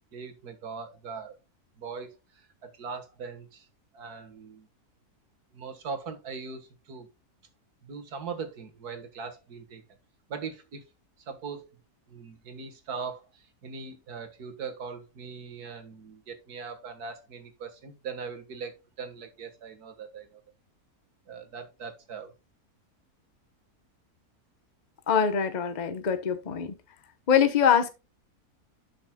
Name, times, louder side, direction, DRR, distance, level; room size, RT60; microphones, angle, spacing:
voice 1, 0.1-1.4 1.8-3.7 3.9-4.7 5.5-7.1 7.8-9.8 10.3-10.8 11.2-11.7 12.1-20.4 21.3-22.3, right 5 dB, 80° right, 2.0 m, -40 dB
voice 2, 25.1-26.8 27.3-27.9, left 7 dB, 35° left, 0.9 m, -23 dB
12.0 x 6.3 x 2.3 m
omnidirectional pair, 1.6 m